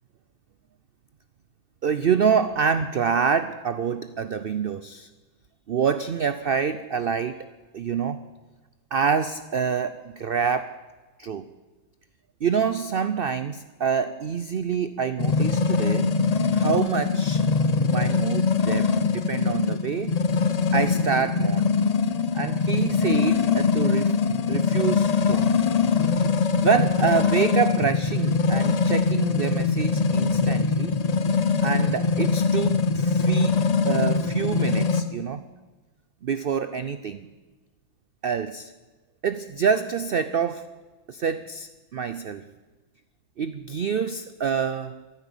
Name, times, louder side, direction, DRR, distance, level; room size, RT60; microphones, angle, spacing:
voice 1, 1.8-5.1 5.7-7.5 7.7-8.3 8.9-10.8 11.2-11.5 12.4-16.1 16.5-17.4 17.7-20.2 20.7-21.8 22.3-24.2 24.5-25.6 26.6-31.0 31.6-35.4 36.2-37.3 38.2-38.7 39.2-40.7 41.1-42.5 43.4-45.0, right 6 dB, 75° right, 12 dB, 0.5 m, -26 dB
sound 1, 15.2-35.0, left 5 dB, 85° left, 0.3 m, -22 dB
14.0 x 14.0 x 7.1 m, 1.3 s
omnidirectional pair, 1.7 m